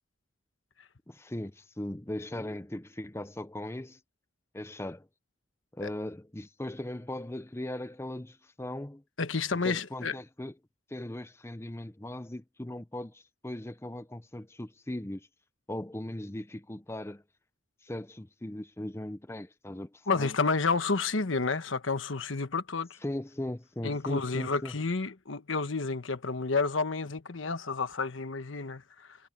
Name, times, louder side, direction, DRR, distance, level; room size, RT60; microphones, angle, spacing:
voice 1, 1.1-4.0 4.5-5.1 5.7-9.0 9.5-10.5 10.9-15.3 15.7-17.2 17.8-20.3 23.0-24.7, left 1 dB, 15° left, 0.7 m, -38 dB
voice 2, 9.2-10.2 20.1-23.0 23.8-29.2, left 4 dB, 75° left, 1.2 m, -30 dB
head